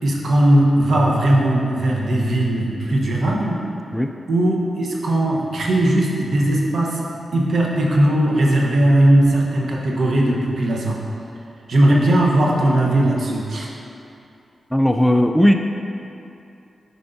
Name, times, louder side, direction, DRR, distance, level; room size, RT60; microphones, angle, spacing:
voice 1, 0.0-3.7 4.3-7.1 7.3-11.0 11.7-13.7, right 1 dB, 70° right, -2 dB, 1.1 m, -18 dB
voice 2, 14.7-15.5, equal, ahead, 4 dB, 0.4 m, -16 dB
8.9 x 5.4 x 2.7 m, 2.7 s
cardioid pair, 50°, 0 cm